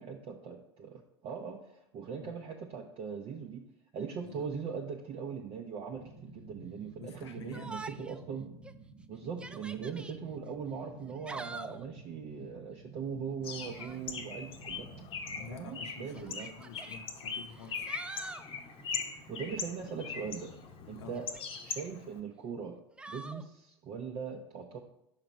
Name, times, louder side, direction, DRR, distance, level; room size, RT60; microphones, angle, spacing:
voice 1, 0.0-3.6 3.9-8.5 9.1-14.9 15.5-16.5 19.3-20.5 20.9-21.3 21.6-22.8 23.1-24.8, right 6 dB, 40° right, 1 dB, 0.7 m, -40 dB
sound 1, 5.9-15.9, right 2 dB, 10° left, 1.1 m, -52 dB
voice 2, 7.0-7.8 15.3-17.9 20.9-21.2, left 5 dB, 75° left, 6 dB, 0.8 m, -49 dB
Yell, 7.5-8.2 8.6-8.7 9.3-10.2 11.0-11.9 13.6-14.0 15.2-15.3 16.2-17.0 17.5-18.5 21.1-21.8 23.0-23.4, right 3 dB, 5° right, 0.3 m, -45 dB
Bird, 13.4-22.2, left 5 dB, 40° left, 0.9 m, -41 dB
5.9 x 4.9 x 4.3 m, 0.78 s
figure-of-eight pair, 80°, 15 cm